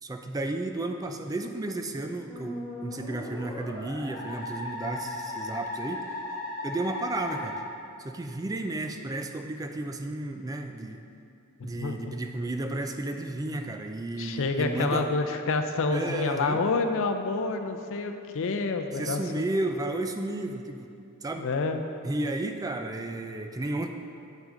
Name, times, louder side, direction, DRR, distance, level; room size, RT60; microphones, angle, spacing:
voice 1, 0.0-2.6 2.8-6.3 6.6-7.6 8.0-11.1 11.6-15.1 15.9-16.6 18.9-20.9 21.2-21.5 22.0-23.9, right 2 dB, 15° right, 5 dB, 0.3 m, -33 dB
Musical instrument, 2.3-7.5, left 1 dB, 20° left, 1.9 m, -36 dB
voice 2, 11.6-12.2 14.2-19.5 21.4-21.8, left 3 dB, 65° left, 6 dB, 0.5 m, -28 dB
8.5 x 6.1 x 3.8 m, 2.5 s
head